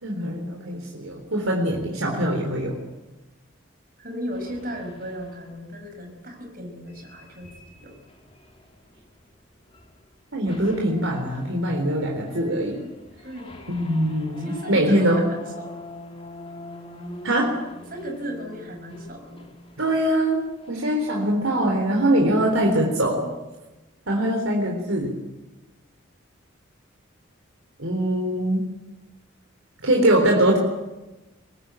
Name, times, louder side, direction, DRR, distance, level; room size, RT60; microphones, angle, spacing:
voice 1, 0.0-2.8 10.3-12.8 13.7-15.2 17.2-17.5 19.8-20.4 20.7-23.2 24.1-25.1 27.8-28.6 29.8-30.6, right 1 dB, 90° right, 1 dB, 4.0 m, -22 dB
voice 2, 4.0-7.5 7.8-8.0 13.2-13.7 14.4-15.7 17.9-19.5, equal, 45° right, 3 dB, 5.6 m, -35 dB
sound 1, 4.3-5.6 6.8-9.3 9.7-10.1 10.4-20.7, left 2 dB, 30° left, 3.2 m, -44 dB
23.5 x 19.0 x 9.0 m, 1.1 s
head